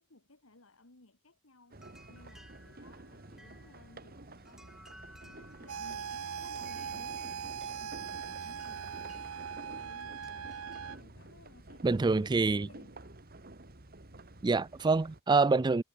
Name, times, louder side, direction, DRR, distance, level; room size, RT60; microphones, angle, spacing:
voice 1, 0.0-1.8 2.1-4.8 5.2-9.0 9.6-10.5 11.0-13.2, left 2 dB, 75° left, 2.5 m, -58 dB
sound 1, 1.7-11.0, equal, ahead, 3.4 m, -59 dB
sound 2, 1.7-15.2, right 2 dB, 45° right, 2.4 m, -51 dB
sound 3, 5.7-11.0, right 7 dB, 85° right, 0.6 m, -40 dB
voice 2, 11.8-12.7 14.4-15.8, right 3 dB, 20° right, 0.4 m, -26 dB
head